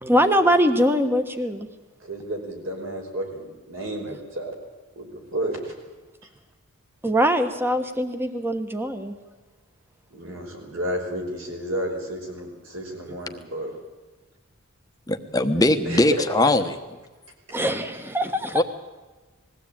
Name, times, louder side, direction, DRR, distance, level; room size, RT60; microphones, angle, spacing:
voice 1, 0.0-1.7 7.0-9.1 17.5-18.6, equal, 10° right, 8 dB, 1.3 m, -22 dB
voice 2, 2.0-4.6 5.0-5.7 10.1-13.7 15.9-16.1, right 1 dB, 65° right, 1 dB, 5.3 m, -32 dB
voice 3, 15.1-16.7 18.5-18.6, left 2 dB, 15° left, 6 dB, 1.1 m, -20 dB
21.0 x 15.5 x 8.9 m, 1.3 s
head